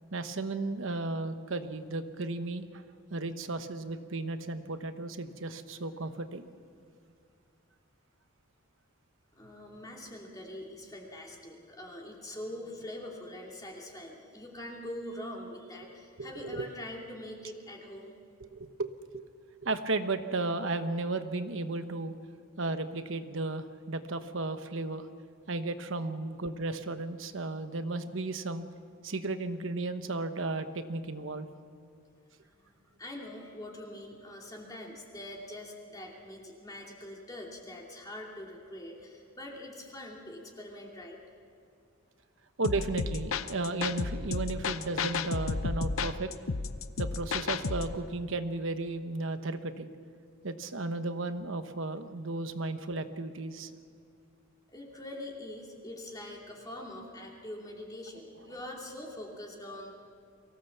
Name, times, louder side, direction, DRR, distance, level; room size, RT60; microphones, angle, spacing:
voice 1, 0.1-2.8 3.1-6.5 16.2-16.7 18.4-19.2 19.6-22.2 22.6-25.1 25.5-28.6 29.0-31.5 42.6-46.3 47.0-49.9 50.4-53.7, right 2 dB, 65° right, 9 dB, 1.1 m, -34 dB
voice 2, 9.4-18.1 32.6-32.7 33.0-41.2 54.7-59.9, left 1 dB, 20° left, -2 dB, 2.7 m, -43 dB
sound 1, 42.6-48.0, left 4 dB, 75° left, 0.8 m, -33 dB
23.5 x 16.5 x 7.2 m, 2.5 s
head